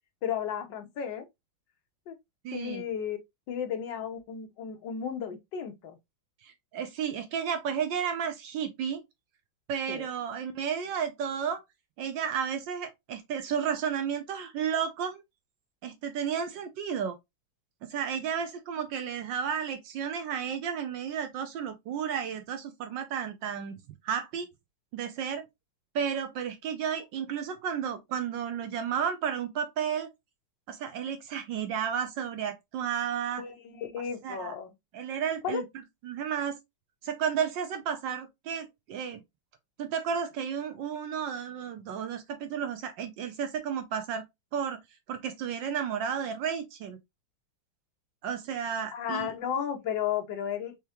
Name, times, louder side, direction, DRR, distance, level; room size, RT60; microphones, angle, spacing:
voice 1, 0.2-1.2 2.1-2.2 2.5-3.2 3.5-6.0 9.9-10.1 33.4-34.7 35.4-35.6 48.9-50.7, left 8 dB, 70° left, 1.6 m, -33 dB
voice 2, 2.4-2.8 6.4-9.0 9.7-11.6 12.0-15.2 15.8-17.2 17.8-23.8 24.0-24.5 24.9-25.4 25.9-30.1 30.7-33.4 34.2-34.5 34.9-35.6 36.0-36.6 37.0-39.2 39.8-44.2 44.5-44.8 45.1-47.0 48.2-49.3, right 7 dB, 70° right, 1.3 m, -32 dB
4.5 x 3.6 x 2.9 m
omnidirectional pair, 2.1 m